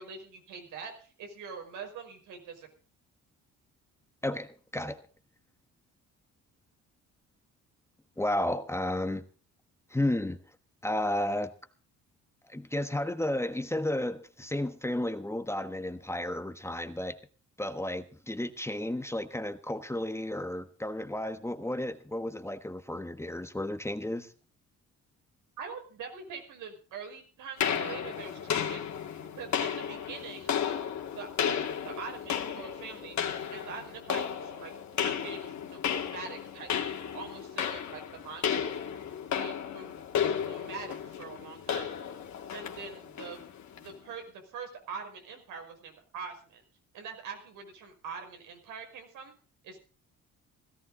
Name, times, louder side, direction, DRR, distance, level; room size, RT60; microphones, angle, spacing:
voice 1, 0.0-2.7 25.6-28.8 29.2-30.9 31.1-33.2 33.5-34.7 35.0-38.7 39.4-40.1 40.4-41.9 42.5-43.4 43.8-46.6 46.9-49.3 49.6-49.8, right 5 dB, 85° right, 5.3 m, -44 dB
voice 2, 4.2-5.0 8.2-9.2 9.9-10.4 10.8-11.5 12.5-17.2 17.6-24.3, left 1 dB, 10° left, 1.3 m, -32 dB
sound 1, 27.6-44.0, left 8 dB, 65° left, 2.6 m, -34 dB
17.0 x 14.5 x 3.9 m
cardioid pair, 90°, 30 cm